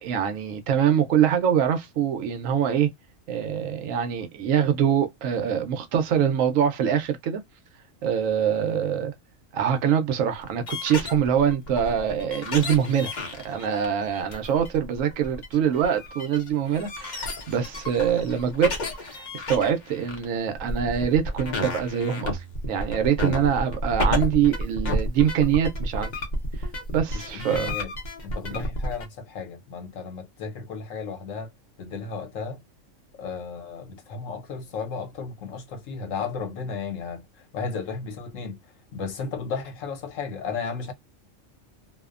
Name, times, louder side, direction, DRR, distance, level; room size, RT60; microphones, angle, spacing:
voice 1, 0.0-2.9 3.3-7.4 8.0-9.1 9.5-13.1 13.4-18.8 19.0-26.1 26.9-27.7 28.5-28.7, right 8 dB, 80° right, 1.0 m, -24 dB
sound 1, 10.3-29.1, left 1 dB, 45° left, 0.7 m, -31 dB
voice 2, 27.1-27.9 28.2-31.5 31.8-32.6 33.2-38.6 38.9-40.9, left 5 dB, 75° left, 1.1 m, -34 dB
2.6 x 2.1 x 2.3 m
omnidirectional pair, 1.4 m